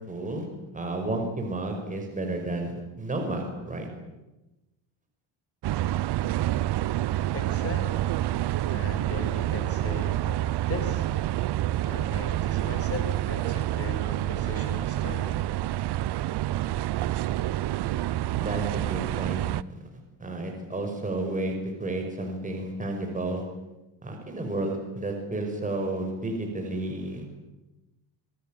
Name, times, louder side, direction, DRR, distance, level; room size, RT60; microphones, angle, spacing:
voice 1, 0.1-0.5 0.7-3.9 18.4-19.4 20.2-21.5 21.8-23.4 24.0-27.3, right 2 dB, 15° right, 3 dB, 5.7 m, -31 dB
sound 1, 5.6-19.6, right 14 dB, 55° right, 0.9 m, -28 dB
voice 2, 7.3-8.1 8.7-11.1 11.8-15.4, left 4 dB, 30° left, 6 dB, 6.3 m, -38 dB
27.0 x 19.5 x 9.2 m, 1.0 s
cardioid pair, 125°, 49 cm